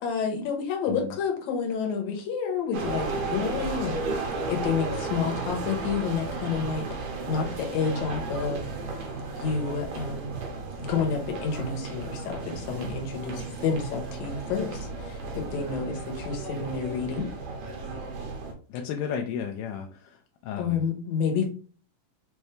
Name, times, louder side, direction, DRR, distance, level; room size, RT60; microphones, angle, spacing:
voice 1, 0.0-4.0 4.5-8.6 9.4-10.3 10.8-17.3 20.6-21.5, left 6 dB, 65° left, 2 dB, 2.1 m, -29 dB
sound 1, 2.7-18.5, right 3 dB, 80° right, 2.3 m, -34 dB
voice 2, 18.7-20.8, left 7 dB, 80° left, 3 dB, 2.0 m, -33 dB
5.8 x 2.7 x 3.3 m, 0.39 s
omnidirectional pair, 3.7 m